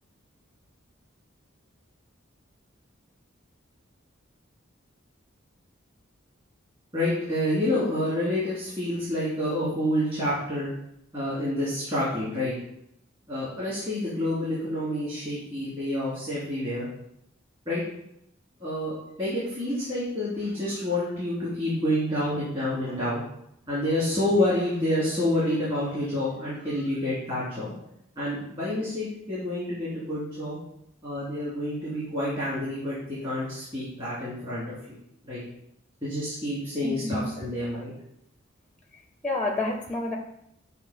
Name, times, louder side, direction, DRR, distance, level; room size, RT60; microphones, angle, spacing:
voice 1, 6.9-10.7 11.1-12.5 13.3-16.9 17.7-17.8 18.6-23.2 23.7-27.8 28.2-30.6 31.0-35.0 35.2-35.4 36.0-37.9, left 1 dB, 30° right, -10 dB, 2.7 m, -28 dB
voice 2, 36.8-37.3 39.2-40.2, left 2 dB, 5° left, 2 dB, 0.5 m, -28 dB
7.9 x 2.8 x 5.0 m, 0.76 s
head